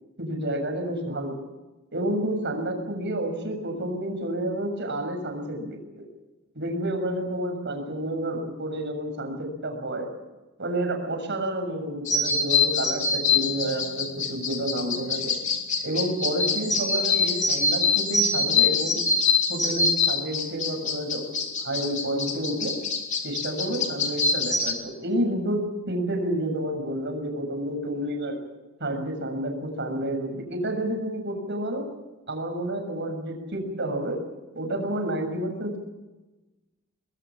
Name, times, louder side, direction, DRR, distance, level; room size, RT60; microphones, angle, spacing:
voice 1, 0.2-1.4 1.9-6.0 6.5-10.1 10.6-15.4 15.8-19.0 19.5-22.7 23.2-28.4 28.8-31.9 32.3-34.2 34.5-35.8, right 1 dB, 60° right, 4 dB, 6.6 m, -30 dB
sound 1, 12.1-24.7, left 4 dB, 35° left, 3.7 m, -25 dB
24.5 x 21.5 x 7.5 m, 1.1 s
head